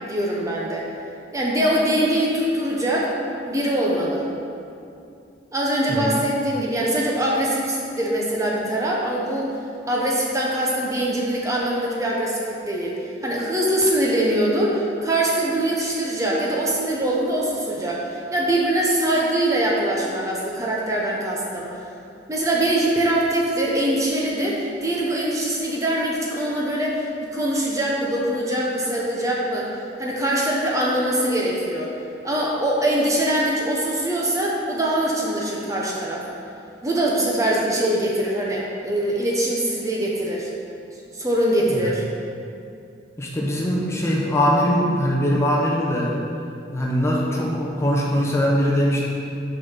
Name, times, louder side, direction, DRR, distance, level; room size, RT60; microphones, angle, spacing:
voice 1, 0.0-0.9 1.3-3.1 3.5-4.2 5.5-9.5 9.9-12.9 13.2-21.8 22.3-29.7 30.0-31.9 32.2-36.2 36.8-40.5 41.1-42.0, right 1 dB, 20° right, -4 dB, 0.9 m, -23 dB
voice 2, 43.2-46.1 46.7-49.1, equal, 15° left, -4 dB, 1.0 m, -21 dB
6.4 x 5.5 x 5.7 m, 2.5 s
head